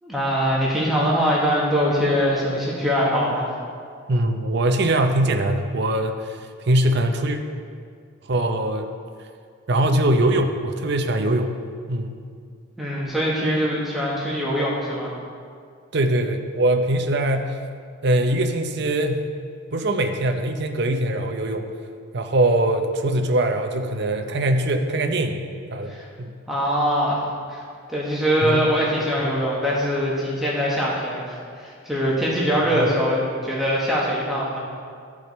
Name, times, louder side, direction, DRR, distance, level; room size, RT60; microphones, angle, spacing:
voice 1, 0.0-3.5 12.8-15.1 25.9-26.0 26.5-27.2 27.5-27.6 27.9-34.6, equal, ahead, -7 dB, 1.4 m, -22 dB
voice 2, 4.1-7.4 8.3-8.9 9.7-11.6 11.9-12.2 15.9-17.6 18.0-19.3 19.7-21.7 22.1-25.4 25.7-26.3 28.4-28.7 32.7-32.9, right 1 dB, 55° right, 5 dB, 0.6 m, -22 dB
13.0 x 4.9 x 4.2 m, 2.2 s
head